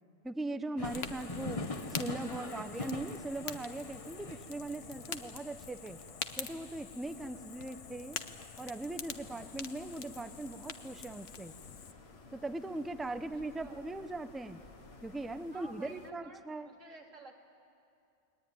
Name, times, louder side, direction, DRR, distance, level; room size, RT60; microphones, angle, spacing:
voice 1, 0.2-1.6 1.9-6.0 6.4-8.2 8.6-11.6 12.3-14.6 15.0-16.7, right 2 dB, ahead, 11 dB, 0.4 m, -40 dB
Fire, 0.8-11.9, left 7 dB, 70° left, 1.3 m, -46 dB
sound 1, 0.8-15.5, left 2 dB, 25° left, 1.3 m, -46 dB
voice 2, 2.3-2.7 4.2-5.2 9.4-9.7 13.1-13.2 13.6-13.9 15.5-17.4, right 3 dB, 70° right, 1 dB, 3.0 m, -54 dB
sound 2, 9.1-16.1, left 4 dB, 55° left, 1.5 m, -57 dB
29.5 x 21.5 x 9.3 m, 2.5 s
omnidirectional pair, 1.3 m